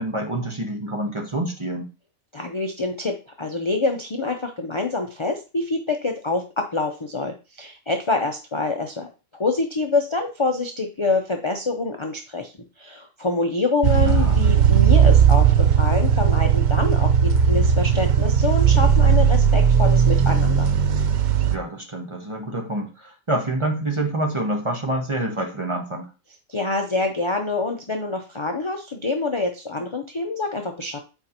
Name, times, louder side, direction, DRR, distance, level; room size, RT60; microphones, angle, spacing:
voice 1, 0.0-1.9 14.0-14.4 21.5-26.1, right 1 dB, 25° right, 2 dB, 1.0 m, -27 dB
voice 2, 2.3-12.5 12.8-20.7 26.5-31.0, left 3 dB, 35° left, 3 dB, 0.5 m, -26 dB
sound 1, 13.8-21.6, right 8 dB, 85° right, 0.4 m, -17 dB
7.9 x 4.5 x 2.9 m, 0.30 s
omnidirectional pair, 1.4 m